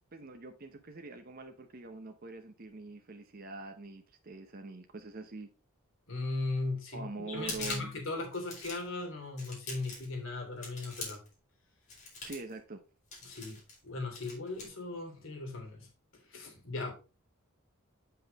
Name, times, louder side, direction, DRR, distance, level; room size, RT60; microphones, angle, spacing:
voice 1, 0.1-5.5 6.9-7.9 12.2-12.8, right 3 dB, 40° right, 0.8 m, -44 dB
voice 2, 6.1-11.2 13.2-15.9 16.3-16.9, left 3 dB, 60° left, 3.0 m, -38 dB
sound 1, 7.3-8.0 8.3-8.9 9.4-10.1 10.6-11.3 11.9-12.5 13.1-13.8 14.1-14.7, left 3 dB, 35° left, 3.7 m, -42 dB
7.8 x 5.6 x 4.0 m
head